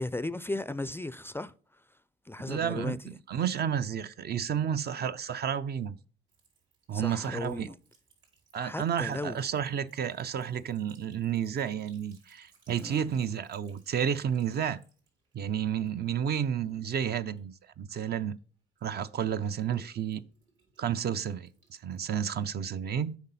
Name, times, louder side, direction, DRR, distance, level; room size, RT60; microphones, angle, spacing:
voice 1, 0.0-1.5 2.3-3.0 6.9-7.8 8.6-9.4 12.8-13.0, left 2 dB, 10° left, 0.4 m, -35 dB
voice 2, 2.4-6.0 6.9-7.7 8.5-14.8 15.3-18.4 18.8-20.2 20.8-23.2, right 8 dB, 55° right, 0.6 m, -31 dB
Sink (filling or washing) / Trickle dribble, 6.3-18.4 18.8-22.6, right 4 dB, 75° right, 3.9 m, -64 dB
8.1 x 5.5 x 4.1 m
cardioid pair, 90°, 20 cm